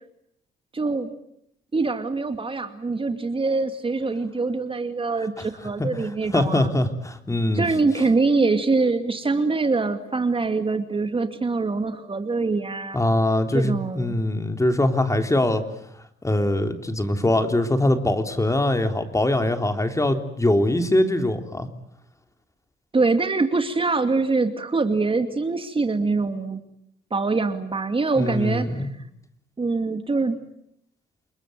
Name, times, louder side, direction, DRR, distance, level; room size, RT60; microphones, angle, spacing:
voice 1, 0.7-1.1 1.7-6.7 7.5-13.0 13.5-14.1 22.9-26.6 27.1-28.9 29.6-30.3, right 3 dB, 25° right, 8 dB, 2.4 m, -24 dB
voice 2, 6.0-7.7 12.9-15.6 16.2-21.7 28.2-28.9, left 1 dB, 15° left, 7 dB, 3.6 m, -22 dB
29.5 x 21.5 x 9.3 m, 0.74 s
cardioid pair, 90°, 20 cm